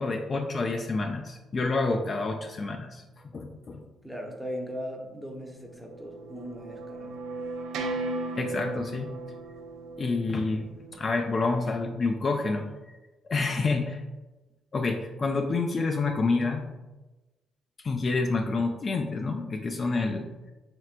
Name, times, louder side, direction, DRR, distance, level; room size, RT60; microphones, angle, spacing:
voice 1, 0.0-3.0 3.3-3.8 8.3-9.1 10.0-10.7 10.9-12.7 13.3-14.0 14.7-16.7 17.8-20.3, left 3 dB, 40° left, 3 dB, 0.3 m, -28 dB
voice 2, 4.0-7.2, equal, 5° right, 1 dB, 0.7 m, -38 dB
sound 1, 5.5-11.5, right 2 dB, 85° right, 0.4 m, -37 dB
4.4 x 3.2 x 2.4 m, 1.1 s
cardioid pair, 90°, 0 cm